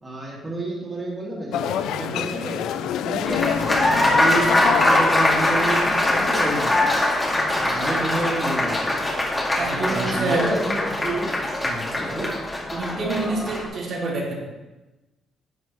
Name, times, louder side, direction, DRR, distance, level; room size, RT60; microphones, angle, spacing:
voice 1, 0.0-7.0 7.5-9.0 9.5-11.3 11.6-12.3, right 2 dB, 25° right, -5 dB, 2.6 m, -30 dB
sound 1, 1.5-7.3, left 10 dB, 85° left, 0.3 m, -28 dB
Applause, 3.3-13.7, left 1 dB, 20° left, 2.1 m, -22 dB
voice 2, 9.6-10.5 12.7-14.4, right 3 dB, 65° right, -5 dB, 3.0 m, -26 dB
11.0 x 7.5 x 3.1 m, 1.1 s
cardioid pair, 90°, 0 cm